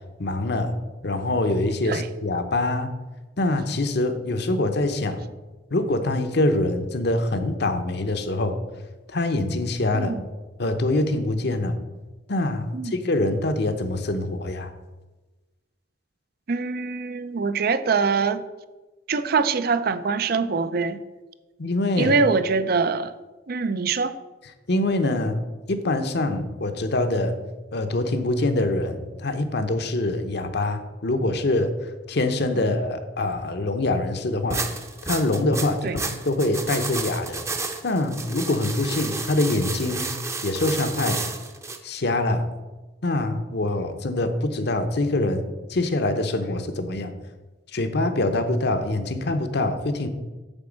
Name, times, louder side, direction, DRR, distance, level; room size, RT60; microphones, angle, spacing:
voice 1, 0.2-0.7 1.0-3.0 3.4-5.2 5.7-8.6 9.1-10.1 10.6-11.8 12.3-14.7 21.6-22.2 24.7-25.4 25.7-27.3 27.7-31.7 32.1-34.7 35.1-37.4 37.8-40.1 40.4-41.2 41.8-42.4 43.0-45.4 45.7-47.1 47.7-50.1, left 2 dB, 60° left, 0.8 m, -24 dB
voice 2, 9.9-10.2 12.7-13.0 16.5-18.4 19.1-21.0 22.0-23.1 23.5-24.1 35.8-35.9, right 4 dB, 55° right, 0.5 m, -23 dB
sound 1, 34.5-41.8, right 3 dB, 15° right, 0.7 m, -31 dB
8.9 x 4.3 x 7.3 m
head